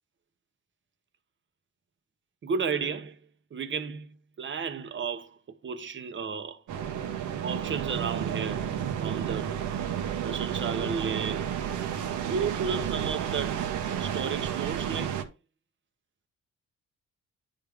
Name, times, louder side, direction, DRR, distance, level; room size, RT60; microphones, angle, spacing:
voice 1, 2.4-3.2 3.5-6.6 7.4-8.7 9.0-9.6 10.2-11.5 11.9-13.7 14.0-15.2, right 5 dB, 40° right, 0.8 m, -33 dB
sound 1, 6.7-15.2, right 9 dB, 75° right, 0.9 m, -31 dB
10.0 x 3.5 x 3.5 m
cardioid pair, 90°, 30 cm